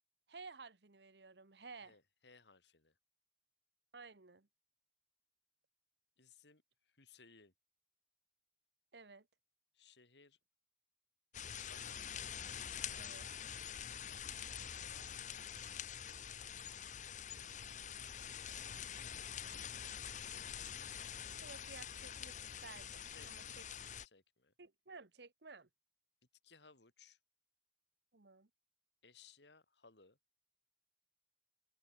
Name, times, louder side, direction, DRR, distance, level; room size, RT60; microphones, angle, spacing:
voice 1, 0.3-1.9 3.9-4.5 8.9-9.3 12.9-13.3 21.4-23.6 24.6-25.7 28.1-28.5, right 4 dB, 75° right, 1.4 m, -55 dB
voice 2, 1.8-3.0 6.2-7.5 9.7-10.4 11.6-12.0 14.6-15.1 23.1-23.6 24.0-24.5 26.4-27.2 29.0-30.2, left 5 dB, 80° left, 3.4 m, -64 dB
sound 1, 11.3-24.1, left 9 dB, 45° left, 0.9 m, -46 dB
head